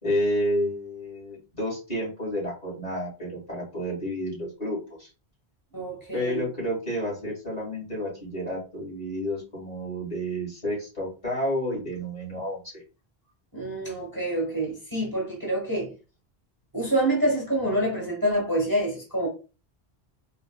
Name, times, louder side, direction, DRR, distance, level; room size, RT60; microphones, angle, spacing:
voice 1, 0.0-5.1 6.1-12.8, equal, 40° left, 2.1 m, -30 dB
voice 2, 5.7-6.4 13.5-15.9 16.7-19.3, right 1 dB, 20° right, 1.0 m, -27 dB
3.8 x 2.5 x 2.2 m
omnidirectional pair, 1.1 m